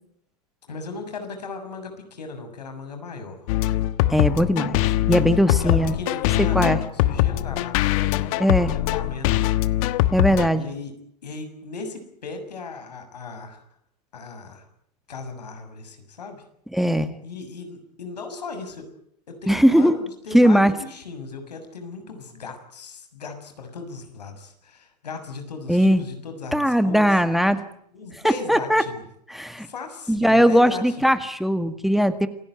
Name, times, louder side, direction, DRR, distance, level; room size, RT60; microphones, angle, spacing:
voice 1, 0.7-3.5 5.5-9.5 10.5-10.9 11.2-13.6 14.1-14.6 15.1-16.4 17.2-18.9 19.3-27.1 27.9-29.0 29.6-31.1, left 4 dB, 85° left, 7 dB, 6.8 m, -37 dB
sound 1, 3.5-10.5, left 15 dB, 60° left, 1.3 m, -22 dB
voice 2, 4.1-4.8 5.1-5.9 6.5-6.8 8.4-8.7 10.1-10.7 16.7-17.1 19.5-20.0 20.3-20.7 25.7-26.0 26.5-27.6 28.2-28.8 29.3-29.7 30.1-32.3, equal, ahead, 10 dB, 1.9 m, -19 dB
28.0 x 17.0 x 9.3 m, 0.70 s
hypercardioid pair, 100°, 21 cm